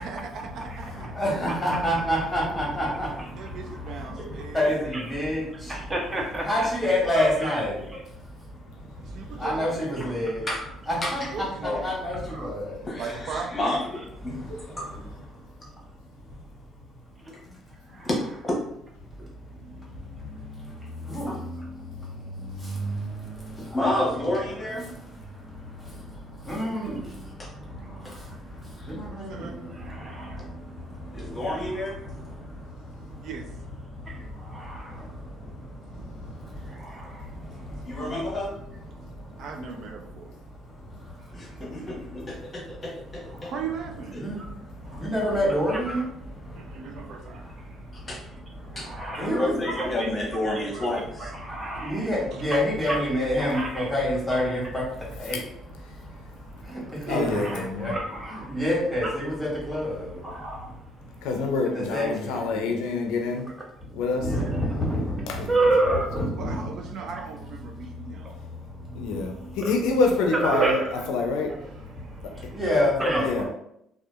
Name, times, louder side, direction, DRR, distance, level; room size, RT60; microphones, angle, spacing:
voice 1, 0.0-1.2 1.5-1.6 3.4-4.9 9.0-9.8 11.2-11.8 13.0-13.8 27.0-27.2 29.1-29.6 33.2-33.5 39.4-40.3 41.5-41.9 43.5-44.2 46.5-47.8 52.3-52.4 57.1-57.5 66.3-68.4 72.0-72.6, right 5 dB, 60° right, 0.4 m, -38 dB
voice 2, 0.9-5.8 6.4-10.5 10.9-11.5 11.8-12.9 14.2-14.8 15.3-15.5 16.5-16.6 19.0-23.8 24.2-24.3 24.9-31.7 32.0-33.3 33.9-38.3 38.9-39.4 40.5-42.8 43.2-43.5 44.2-46.1 46.4-48.1 48.5-49.6 51.5-55.4 55.8-57.2 57.5-57.9 58.5-61.3 61.7-62.6 64.2-65.5 66.1-66.5 67.7-68.0 68.3-69.6 71.9-73.4, equal, 5° left, 1.3 m, -30 dB
voice 3, 1.5-1.8 3.2-3.3 4.9-5.0 5.5-6.7 7.2-7.6 7.9-8.0 10.6-10.7 17.2-17.4 17.9-18.1 27.8-28.4 29.7-30.5 31.6-31.9 34.1-35.0 36.7-37.3 43.3-43.5 44.8-45.0 45.7-46.0 48.7-50.1 50.7-50.9 51.2-52.1 52.5-53.9 54.3-54.4 56.7-58.6 59.0-59.1 60.2-60.8 65.5-66.3 69.6-69.7 70.3-71.1 73.0-73.4, right 2 dB, 20° right, 0.6 m, -31 dB
voice 4, 12.9-14.0 14.2-15.1 18.0-18.2 18.4-18.6 21.3-21.4 23.7-24.9 27.4-27.5 28.0-28.1 28.8-28.9 31.1-32.0 37.8-38.5 41.3-43.5 47.9-48.2 48.8-48.9 49.2-51.3, left 1 dB, 20° left, 0.9 m, -30 dB
voice 5, 57.1-58.0 61.2-63.5 63.9-64.3 65.3-65.5 68.9-70.8 71.1-71.5 73.2-73.4, left 3 dB, 90° left, 0.4 m, -26 dB
2.7 x 2.3 x 2.3 m
cardioid pair, 110°, 0 cm